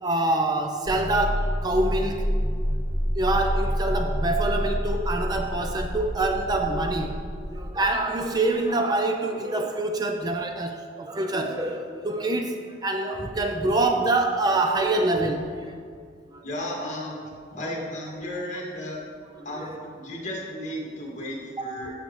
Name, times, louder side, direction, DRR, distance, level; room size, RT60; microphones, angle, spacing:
voice 1, 0.0-2.3 3.2-7.1 7.5-15.7 16.3-16.4 19.6-19.7 21.6-21.7, right 2 dB, 20° right, 4 dB, 0.4 m, -25 dB
sound 1, 0.9-7.7, equal, 65° right, 1.4 m, -28 dB
voice 2, 16.4-17.2 17.5-19.0 19.4-21.9, left 1 dB, 45° left, -3 dB, 2.0 m, -34 dB
13.5 x 6.6 x 3.1 m, 2.1 s
head